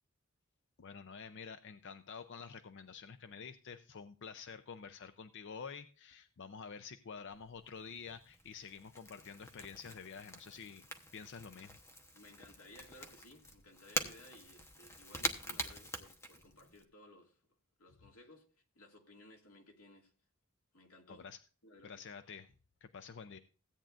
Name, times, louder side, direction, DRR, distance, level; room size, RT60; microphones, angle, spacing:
voice 1, 0.8-10.9 11.1-11.8 21.1-21.4 21.8-22.5 22.8-23.4, left 6 dB, 55° left, 0.5 m, -49 dB
Crackle / Crack, 7.3-16.8, left 1 dB, 15° left, 1.0 m, -45 dB
voice 2, 12.1-17.4 17.8-18.5 18.7-20.1 20.7-21.3 21.6-22.1, left 1 dB, 90° left, 2.2 m, -58 dB
16.0 x 8.8 x 2.5 m
head